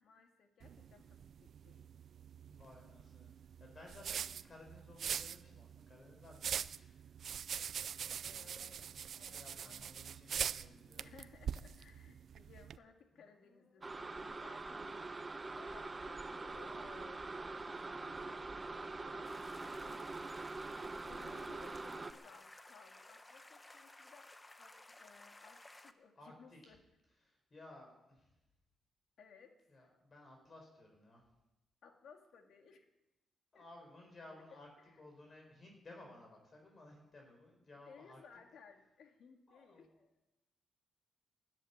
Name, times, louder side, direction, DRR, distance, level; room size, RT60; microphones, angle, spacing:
voice 1, 0.0-1.9 8.2-8.9 9.2-10.1 11.0-17.3 17.6-20.3 21.1-26.8 29.2-29.9 31.8-32.9 33.5-33.6 34.5-34.6 37.8-39.9, left 6 dB, 65° left, 4 dB, 2.5 m, -61 dB
sound 1, 0.6-12.8, right 8 dB, 60° right, 0.5 m, -43 dB
voice 2, 2.5-3.3 3.6-7.1 8.1-8.7 9.3-11.1 13.1-14.0 26.2-26.7 27.2-28.3 29.7-31.2 33.5-34.7 35.0-38.2 39.5-40.1, left 2 dB, 35° left, 2 dB, 5.1 m, -58 dB
sound 2, 13.8-22.1, right 3 dB, 25° right, 1.1 m, -44 dB
sound 3, 19.2-25.9, left 2 dB, 15° left, 1.1 m, -57 dB
13.5 x 11.0 x 9.7 m, 0.93 s
cardioid pair, 95°, 0 cm